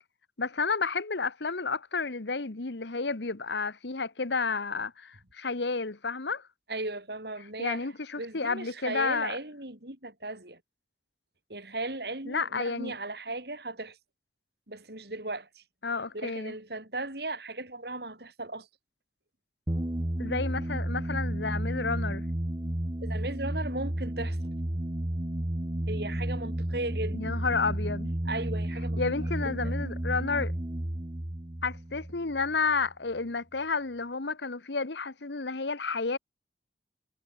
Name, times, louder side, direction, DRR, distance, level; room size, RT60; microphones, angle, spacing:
voice 1, 0.4-6.4 7.6-9.4 12.3-12.9 15.8-16.5 20.2-22.2 27.1-28.1 29.0-30.5 31.6-36.2, left 4 dB, 80° left, 1.3 m, -31 dB
voice 2, 6.7-7.9 8.2-10.6 11.5-14.0 14.7-15.6 16.1-18.7 23.0-24.4 25.9-27.3 28.2-29.0 29.4-29.7, right 2 dB, 65° right, 6.2 m, -36 dB
sound 1, 19.7-32.9, right 1 dB, 30° right, 1.3 m, -32 dB
head